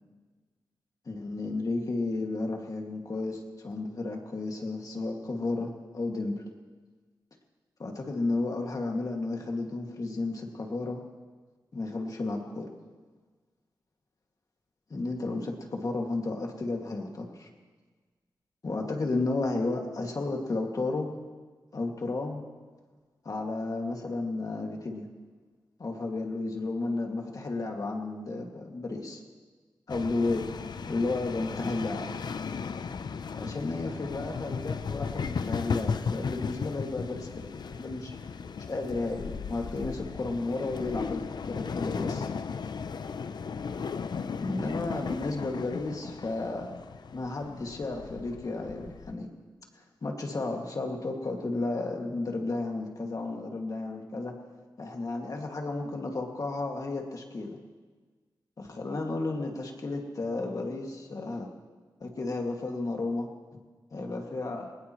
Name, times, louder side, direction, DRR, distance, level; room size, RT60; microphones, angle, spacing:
voice 1, 1.1-6.3 7.8-11.0 11.7-12.7 14.9-17.5 18.6-21.1 21.7-22.4 23.2-25.1 25.8-29.2 29.9-30.4 30.9-32.1 33.3-37.3 37.6-38.1 38.7-42.3 44.4-46.7 47.1-49.3 50.0-54.3 54.8-57.6 58.6-61.5 62.0-63.3 63.9-64.7, left 2 dB, 50° left, 1 dB, 2.2 m, -33 dB
sound 1, 29.9-49.1, left 5 dB, 70° left, 0.6 m, -36 dB
22.0 x 19.5 x 3.1 m, 1.4 s
wide cardioid pair, 110°, 8 cm